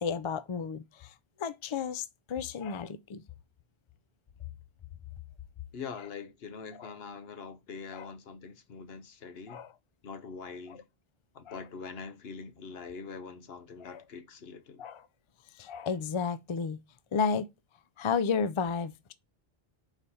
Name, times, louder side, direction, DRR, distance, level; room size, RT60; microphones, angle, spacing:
voice 1, 0.0-1.1 1.4-3.2 6.8-6.9 7.9-8.1 9.5-9.7 10.7-10.8 11.5-11.6 13.8-14.0 14.8-15.1 15.6-16.8 17.1-17.5 18.0-19.1, left 5 dB, 45° left, 0.4 m, -32 dB
voice 2, 5.7-9.6 10.0-10.8 11.3-14.8, left 5 dB, 70° left, 1.1 m, -43 dB
5.0 x 4.1 x 5.5 m
omnidirectional pair, 1.1 m